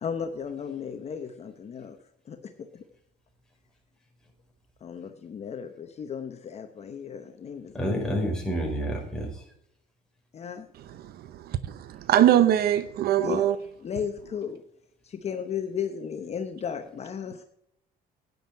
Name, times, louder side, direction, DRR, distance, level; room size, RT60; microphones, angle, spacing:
voice 1, 0.0-2.0 2.3-2.8 4.8-8.1 10.3-10.7 13.2-13.5 13.8-14.6 15.0-17.4, left 7 dB, 40° left, 0.9 m, -35 dB
voice 2, 7.7-9.4, equal, 5° left, 4.6 m, -29 dB
voice 3, 11.0-13.6, right 11 dB, 65° right, 0.7 m, -22 dB
10.0 x 9.5 x 4.6 m
cardioid pair, 110°, 17 cm